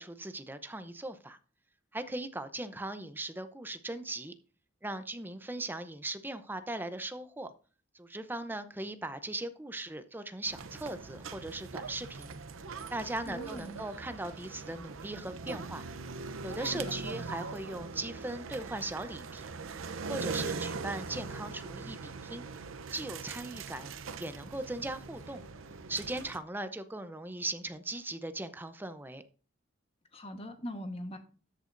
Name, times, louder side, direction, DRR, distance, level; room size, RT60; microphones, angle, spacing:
voice 1, 0.0-1.4 1.9-4.3 4.8-7.5 7.9-12.4 12.9-15.8 16.4-19.4 20.1-22.4 22.9-23.9 24.2-25.4 25.9-29.2, right 2 dB, 10° right, 0.6 m, -39 dB
sound 1, 10.5-26.4, right 4 dB, 90° right, 0.7 m, -41 dB
voice 2, 13.2-13.8 16.6-16.8 30.1-31.2, equal, 30° left, 1.2 m, -41 dB
13.5 x 8.1 x 2.6 m
head